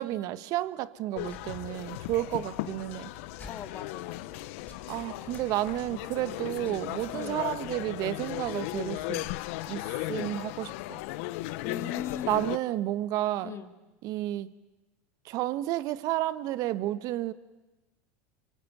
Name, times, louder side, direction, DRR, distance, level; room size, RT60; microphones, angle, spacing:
voice 1, 0.0-3.1 4.9-9.3 9.7-10.7 12.3-13.5 14.0-14.5 15.2-17.3, right 14 dB, 55° right, 15 dB, 1.3 m, -31 dB
sound 1, 1.1-12.6, left 18 dB, 70° left, 0.9 m, -36 dB
sound 2, 1.2-9.3, left 3 dB, 20° left, 5.5 m, -54 dB
voice 2, 3.4-4.4 7.1-7.4 11.6-12.5 13.4-13.8, left 8 dB, 40° left, 7 dB, 2.2 m, -39 dB
25.0 x 24.5 x 9.6 m, 1.1 s
supercardioid pair, 100°, 7 cm